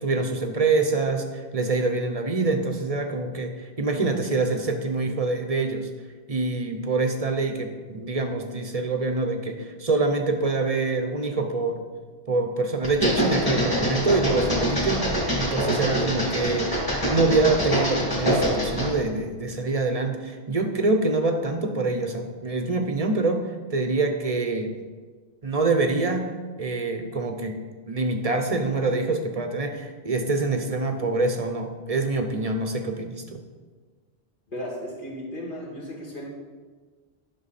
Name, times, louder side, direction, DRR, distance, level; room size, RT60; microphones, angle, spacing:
voice 1, 0.0-5.9 6.3-11.8 12.3-24.8 25.4-26.3 26.6-27.6 27.8-33.4, right 3 dB, 40° right, 5 dB, 0.8 m, -25 dB
sound 1, 12.8-19.0, equal, 20° left, 2.1 m, -25 dB
voice 2, 34.5-36.3, equal, 50° left, -3 dB, 2.2 m, -35 dB
11.0 x 6.2 x 4.2 m, 1.4 s
omnidirectional pair, 1.1 m